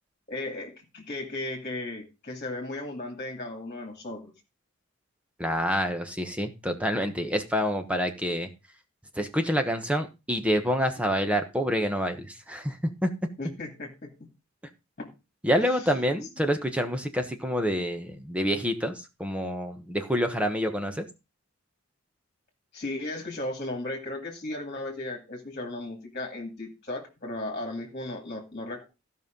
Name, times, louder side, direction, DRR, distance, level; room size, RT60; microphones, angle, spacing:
voice 1, 0.3-4.3 13.4-13.9 15.0-15.1 15.7-15.9 22.7-28.9, left 2 dB, 35° left, 2 dB, 2.2 m, -35 dB
voice 2, 5.4-8.5 9.2-12.8 13.0-13.1 15.4-21.0, equal, 5° right, 6 dB, 1.1 m, -27 dB
15.5 x 5.5 x 5.2 m, 0.28 s
head